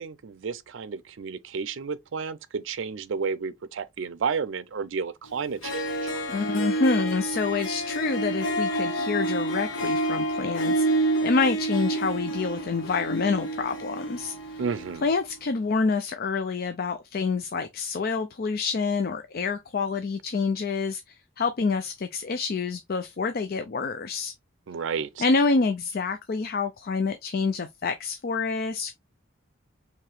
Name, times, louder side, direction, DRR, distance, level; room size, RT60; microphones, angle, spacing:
voice 1, 0.0-6.1 14.6-15.1 24.7-25.2, right 5 dB, 70° right, 0.5 m, -32 dB
Harp, 5.3-5.4 5.6-15.1, right 1 dB, 80° left, 1.2 m, -28 dB
voice 2, 6.3-14.6 15.0-24.3 25.2-29.0, left 4 dB, 50° left, 0.5 m, -27 dB
4.7 x 3.2 x 3.1 m
head